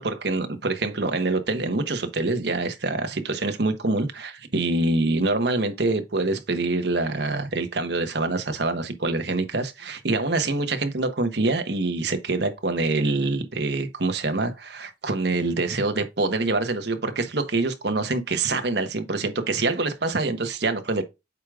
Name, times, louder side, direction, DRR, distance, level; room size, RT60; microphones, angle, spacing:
voice 1, 0.0-21.0, right 2 dB, 65° right, 1.2 m, -25 dB
8.2 x 4.9 x 2.4 m
head